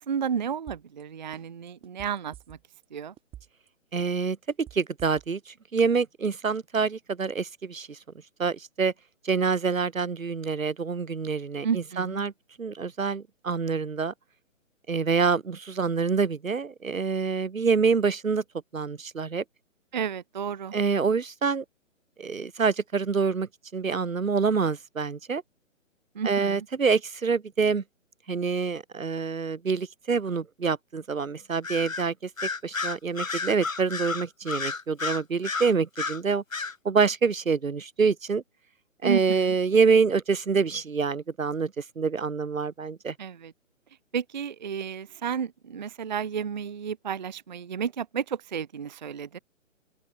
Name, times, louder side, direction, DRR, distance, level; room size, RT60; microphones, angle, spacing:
voice 1, 0.1-2.6 2.9-3.1 11.6-12.2 19.9-20.7 26.2-26.6 39.0-39.5 43.2-43.5 44.1-49.4, right 7 dB, 35° right, 0.5 m, -32 dB
sound 1, 0.7-1.0 1.3-2.8 3.2-3.7 4.0-5.5 5.8-5.9, right 12 dB, 15° right, 6.4 m, -48 dB
voice 2, 3.9-8.0 8.4-8.9 9.2-12.3 12.6-14.1 14.9-18.4 18.7-19.4 20.7-21.6 22.2-25.4 26.2-27.8 28.3-32.3 32.6-36.4 36.8-38.4 39.0-43.1, right 5 dB, 80° right, 1.1 m, -26 dB
Bird vocalization bird call bird song, 31.6-32.0 32.4-36.2 36.5-36.7, left 4 dB, 85° left, 1.4 m, -31 dB
open air
figure-of-eight pair, 135°, 40 cm